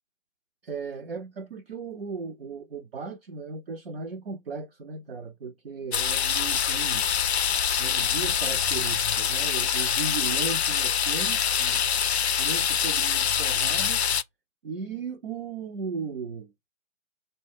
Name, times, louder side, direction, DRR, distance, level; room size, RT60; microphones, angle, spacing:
voice 1, 0.6-7.1 7.8-12.0 12.4-14.0 14.6-16.5, right 5 dB, 45° right, 0.5 m, -36 dB
sound 1, 5.9-14.2, left 8 dB, 55° left, 0.5 m, -25 dB
5.0 x 2.1 x 4.6 m
figure-of-eight pair, 145°, 40 cm